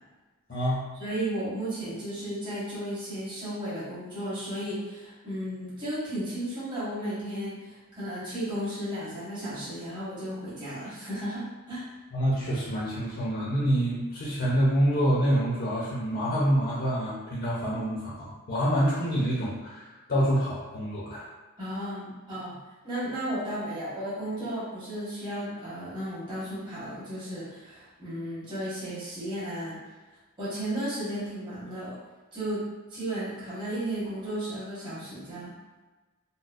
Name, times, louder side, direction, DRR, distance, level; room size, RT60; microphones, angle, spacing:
voice 1, 0.5-0.8 12.1-21.3, equal, 50° left, -8 dB, 0.7 m, -27 dB
voice 2, 1.0-11.9 21.6-22.6 22.8-29.8 30.4-32.0 32.3-35.5, right 1 dB, 20° right, -11 dB, 1.3 m, -34 dB
4.0 x 2.2 x 2.5 m, 1.2 s
head